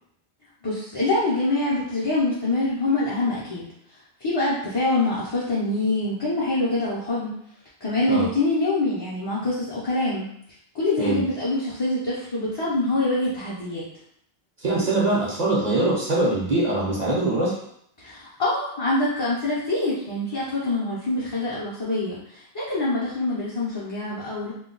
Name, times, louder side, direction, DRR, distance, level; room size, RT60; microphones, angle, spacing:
voice 1, 0.6-3.7 4.2-7.3 7.8-10.3 10.7-13.8 18.0-24.5, left 2 dB, 30° left, -10 dB, 0.5 m, -25 dB
voice 2, 14.6-17.6, right 2 dB, 50° right, -6 dB, 0.7 m, -23 dB
2.3 x 2.2 x 3.7 m, 0.70 s
omnidirectional pair, 1.0 m